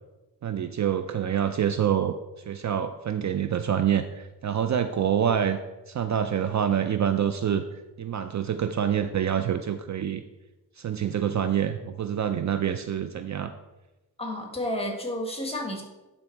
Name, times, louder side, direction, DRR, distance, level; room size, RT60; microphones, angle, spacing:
voice 1, 0.4-2.1 2.5-5.6 5.9-7.6 8.0-10.2 10.8-13.5, right 9 dB, 50° right, 9 dB, 0.4 m, -26 dB
voice 2, 14.2-15.8, left 1 dB, 15° left, 2 dB, 1.7 m, -31 dB
10.5 x 4.0 x 4.5 m, 1.1 s
cardioid pair, 95°, 39 cm